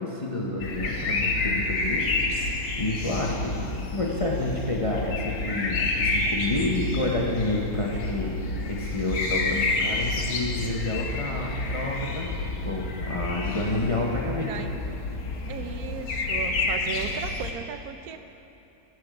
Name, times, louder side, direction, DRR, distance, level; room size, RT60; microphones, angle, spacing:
voice 1, 0.0-2.5 2.8-8.4 8.7-14.6, left 2 dB, 30° left, -2 dB, 0.6 m, -29 dB
sound 1, 0.6-17.5, left 3 dB, 70° left, 1.4 m, -29 dB
voice 2, 14.5-14.8 15.5-18.2, right 7 dB, 75° right, 8 dB, 1.0 m, -36 dB
15.5 x 6.0 x 4.9 m, 2.9 s
omnidirectional pair, 1.6 m